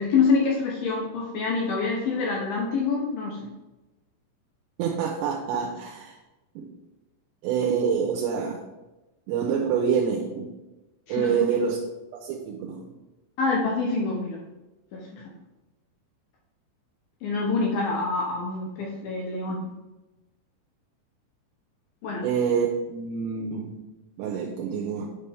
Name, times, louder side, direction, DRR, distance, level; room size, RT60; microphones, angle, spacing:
voice 1, 0.0-3.5 11.1-11.6 13.4-14.4 14.9-15.2 17.2-19.7 22.0-22.3, left 4 dB, 75° left, -2 dB, 2.2 m, -26 dB
voice 2, 4.8-6.2 6.6-6.7 7.4-8.6 9.3-10.5 11.1-11.8 12.1-12.9 22.2-23.8 24.2-25.1, right 7 dB, 80° right, 1 dB, 2.7 m, -26 dB
9.2 x 5.5 x 3.4 m, 1.1 s
omnidirectional pair, 5.4 m